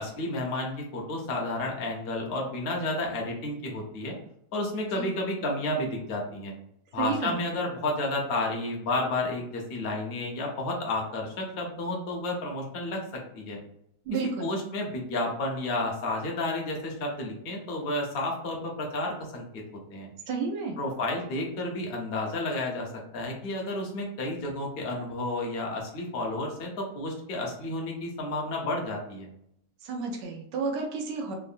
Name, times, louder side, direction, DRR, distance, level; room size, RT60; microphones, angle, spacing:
voice 1, 0.0-4.2 4.5-6.5 6.9-13.6 14.4-19.6 19.9-20.1 20.8-29.3, left 2 dB, 50° left, -1 dB, 0.7 m, -31 dB
voice 2, 7.0-7.4 14.1-14.5 20.3-20.8 29.8-31.3, right 5 dB, 80° right, 2 dB, 1.3 m, -31 dB
3.5 x 2.0 x 2.5 m, 0.74 s
omnidirectional pair, 1.9 m